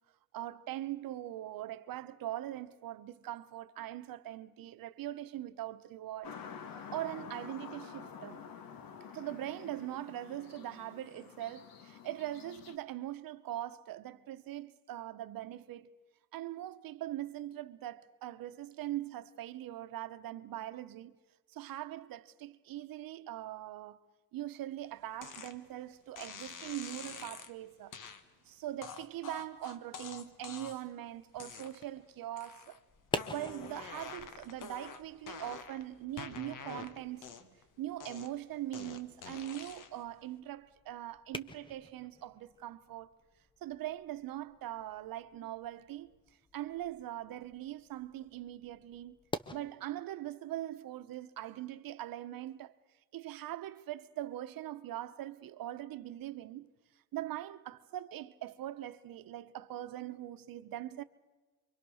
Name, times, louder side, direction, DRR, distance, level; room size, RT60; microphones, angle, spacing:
voice 1, 0.3-6.4 6.9-8.5 9.1-15.9 16.3-21.1 21.5-24.0 24.3-28.0 28.4-32.8 33.3-43.1 43.6-46.1 46.5-49.2 49.5-52.7 53.1-56.7 57.1-61.0, right 13 dB, 80° right, 1.0 m, -41 dB
sound 1, 6.2-12.8, left 7 dB, 85° left, 1.8 m, -49 dB
sound 2, 25.2-25.6 26.1-27.5 27.9-28.2 28.8-30.9 31.3-32.0 32.4-32.8 33.1-35.8 36.2-37.6 38.0-40.0, left 6 dB, 65° left, 1.6 m, -47 dB
sound 3, 32.9-49.6, left 2 dB, 15° left, 0.7 m, -48 dB
28.0 x 24.0 x 6.4 m
cardioid pair, 165°, 34 cm